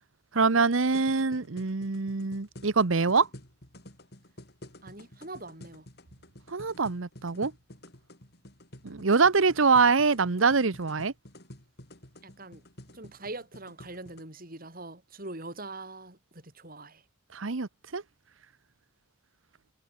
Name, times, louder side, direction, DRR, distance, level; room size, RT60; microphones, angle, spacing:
voice 1, 0.3-3.3 6.5-7.5 8.8-11.1 17.3-18.0, right 4 dB, 80° right, 1.0 m, -24 dB
sound 1, 0.9-14.2, left 1 dB, 55° left, 6.7 m, -50 dB
voice 2, 4.8-5.9 12.2-12.6 12.9-17.0, right 2 dB, 45° right, 5.7 m, -43 dB
head